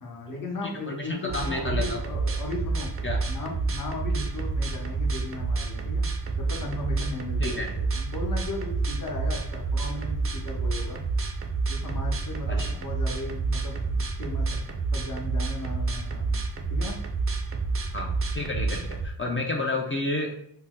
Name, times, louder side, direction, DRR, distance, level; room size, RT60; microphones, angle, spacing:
voice 1, 0.0-3.0 3.3-6.1 6.4-11.0 11.7-14.6 14.9-16.4 16.7-17.0, left 2 dB, 50° left, -1 dB, 1.0 m, -36 dB
voice 2, 0.6-2.0 3.0-3.2 7.4-7.8 12.5-12.8 17.9-20.3, left 2 dB, 30° left, 1 dB, 0.4 m, -31 dB
sound 1, 1.3-19.1, right 3 dB, 35° right, 0.4 m, -29 dB
2.7 x 2.1 x 3.6 m, 0.68 s
wide cardioid pair, 75°, 42 cm